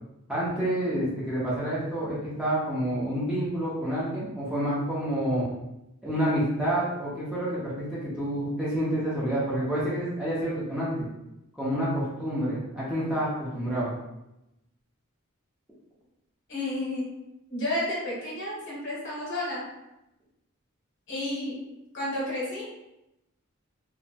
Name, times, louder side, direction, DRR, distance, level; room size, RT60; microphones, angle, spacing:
voice 1, 0.3-5.5 6.0-10.9 11.5-13.9, right 1 dB, 5° right, -9 dB, 0.6 m, -28 dB
voice 2, 16.5-17.1 17.5-19.7 21.1-21.6 21.9-22.7, left 1 dB, 55° left, -5 dB, 1.0 m, -31 dB
2.7 x 2.1 x 2.7 m, 0.91 s
head